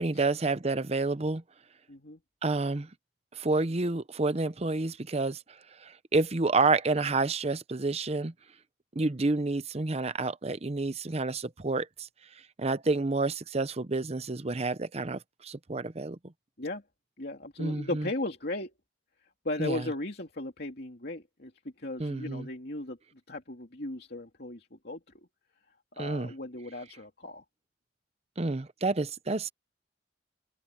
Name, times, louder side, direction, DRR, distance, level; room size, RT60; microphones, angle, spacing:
voice 1, 0.0-1.4 2.4-2.9 3.3-5.4 5.8-8.3 8.9-12.1 12.6-16.2 17.6-18.1 19.6-19.9 22.0-22.5 26.0-26.3 28.4-29.5, right 3 dB, 35° right, 0.8 m, -29 dB
voice 2, 1.9-2.2 16.6-16.8 17.2-18.7 19.4-21.5 21.8-23.0 23.3-25.0 26.0-27.4, left 2 dB, 60° left, 2.9 m, -36 dB
head